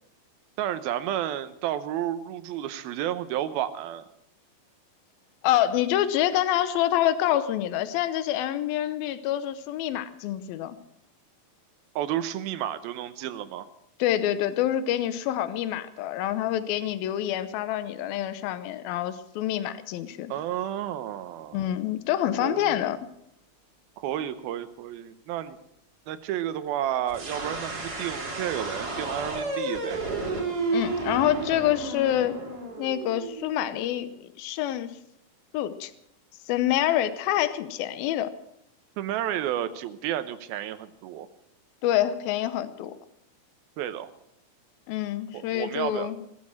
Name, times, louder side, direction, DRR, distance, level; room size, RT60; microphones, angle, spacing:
voice 1, 0.6-4.1 12.0-13.7 20.3-21.7 22.4-23.0 24.0-25.6 26.1-30.0 39.0-41.3 43.8-44.1 45.3-46.1, right 11 dB, 85° right, 12 dB, 2.8 m, -31 dB
voice 2, 5.4-10.8 14.0-20.3 21.5-23.0 30.7-32.4 32.8-34.1 34.4-34.9 35.5-35.9 36.5-38.3 41.8-42.9 44.9-46.2, left 12 dB, 80° left, 13 dB, 2.7 m, -26 dB
sound 1, 27.1-33.9, right 3 dB, 30° right, 2.7 m, -32 dB
17.5 x 13.0 x 6.4 m, 0.75 s
omnidirectional pair, 4.2 m